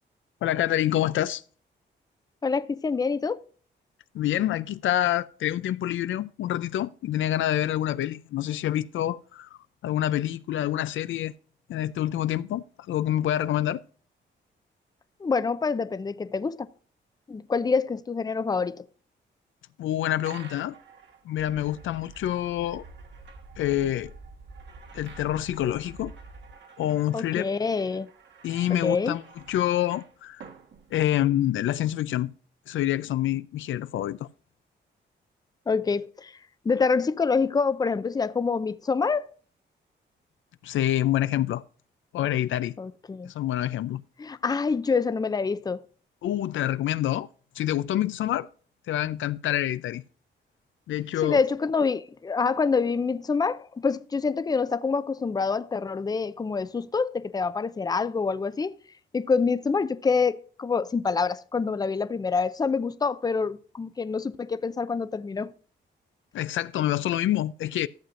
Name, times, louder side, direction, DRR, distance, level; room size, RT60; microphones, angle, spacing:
voice 1, 0.4-1.4 4.1-9.5 9.8-11.3 11.7-13.8 19.8-20.7 21.2-22.8 23.6-24.1 24.9-26.1 26.8-27.5 28.4-29.2 29.5-30.4 30.9-32.3 32.7-34.3 40.6-41.6 42.1-42.8 43.2-44.0 46.2-47.3 47.6-48.5 48.9-50.0 50.9-51.4 66.3-67.9, left 12 dB, 85° left, 0.5 m, -27 dB
voice 2, 2.4-3.4 15.2-16.7 17.3-18.8 27.1-28.1 28.7-29.2 35.7-36.3 36.6-39.3 42.8-43.3 44.2-45.8 51.2-58.8 59.1-65.5, left 5 dB, 20° left, 0.5 m, -26 dB
sound 1, 20.3-31.5, right 5 dB, 70° right, 1.5 m, -52 dB
sound 2, 21.4-26.6, right 3 dB, 50° right, 2.1 m, -47 dB
14.0 x 7.4 x 2.5 m
cardioid pair, 90°, 20 cm